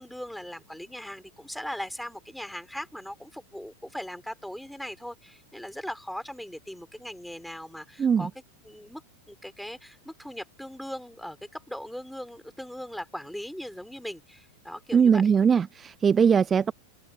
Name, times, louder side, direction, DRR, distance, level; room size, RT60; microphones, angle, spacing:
voice 1, 0.0-8.3 8.6-9.0 9.3-15.2, equal, ahead, 4.8 m, -39 dB
voice 2, 8.0-8.3 14.9-16.7, right 7 dB, 20° right, 0.6 m, -21 dB
figure-of-eight pair, 90°, 0 cm